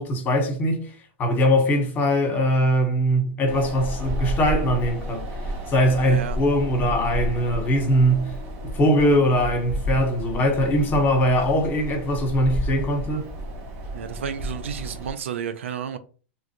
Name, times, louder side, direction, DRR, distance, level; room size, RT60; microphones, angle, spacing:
voice 1, 0.0-8.4 8.6-13.2, equal, 30° left, 1.3 m, -21 dB
Wind, 3.5-15.1, equal, 45° right, 1.0 m, -31 dB
voice 2, 6.0-6.4 13.9-16.0, right 8 dB, 80° right, 0.4 m, -31 dB
3.1 x 2.5 x 2.9 m
hypercardioid pair, 110°, 7 cm